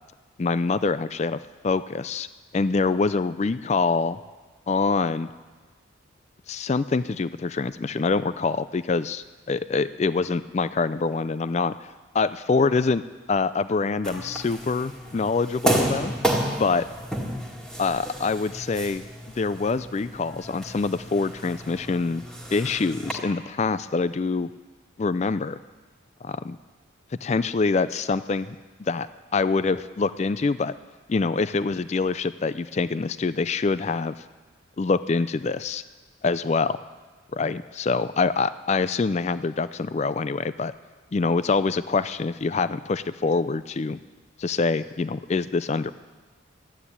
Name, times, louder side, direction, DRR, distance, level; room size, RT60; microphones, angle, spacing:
voice 1, 0.4-1.4 1.6-2.3 2.5-4.2 4.7-5.3 6.5-11.7 12.1-13.0 13.3-16.1 16.6-16.9 17.8-19.0 19.4-22.2 22.5-24.5 25.0-25.6 26.2-26.6 27.2-29.1 29.3-30.7 31.1-34.1 34.8-35.8 36.2-36.8 37.3-40.7 41.1-44.0 44.4-45.9, left 4 dB, 35° left, 15 dB, 0.4 m, -25 dB
sound 1, 14.0-23.1, right 1 dB, 5° left, 1.9 m, -31 dB
13.0 x 9.4 x 9.8 m, 1.3 s
head